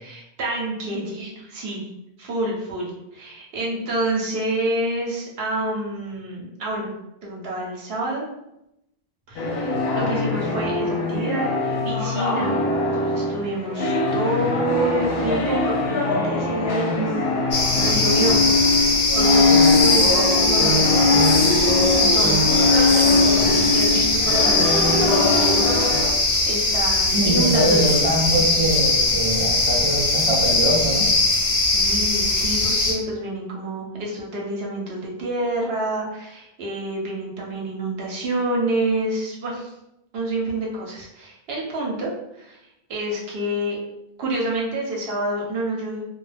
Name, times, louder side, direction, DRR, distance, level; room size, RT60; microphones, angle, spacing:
voice 1, 0.0-1.9 2.2-6.9 7.2-8.3 9.3-11.5 11.8-12.6 13.0-17.4 17.7-22.4 22.8-27.9 31.5-39.7 40.1-42.6 42.9-43.8 44.2-46.1, right 1 dB, 70° right, -2 dB, 0.9 m, -28 dB
sound 1, 9.4-26.1, left 3 dB, 70° left, 0.7 m, -21 dB
sound 2, 17.5-32.9, left 2 dB, 35° left, 0.6 m, -20 dB
voice 2, 27.1-31.1, right 1 dB, 40° right, -4 dB, 0.6 m, -23 dB
2.1 x 2.1 x 3.2 m, 0.86 s
omnidirectional pair, 1.1 m